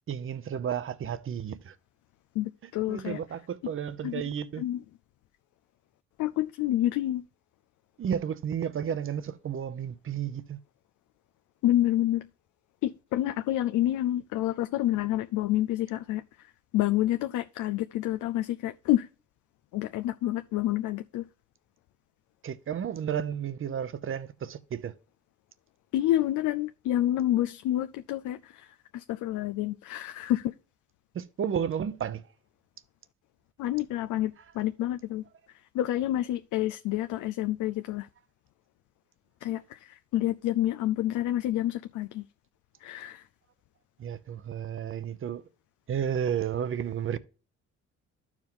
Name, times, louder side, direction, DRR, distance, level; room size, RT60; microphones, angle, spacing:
voice 1, 0.1-1.7 2.9-4.6 8.0-10.6 22.4-24.9 31.1-32.2 44.0-45.4 45.9-47.2, right 8 dB, 45° right, 0.7 m, -32 dB
voice 2, 2.3-3.2 3.6-3.7 4.0-4.2 4.6-4.8 6.2-7.2 11.6-12.3 12.8-16.5 16.7-19.1 19.7-21.2 25.9-30.5 33.6-38.1 39.4-42.3 42.8-43.3, left 13 dB, 80° left, 0.5 m, -28 dB
12.0 x 4.9 x 3.7 m
cardioid pair, 90°, 30 cm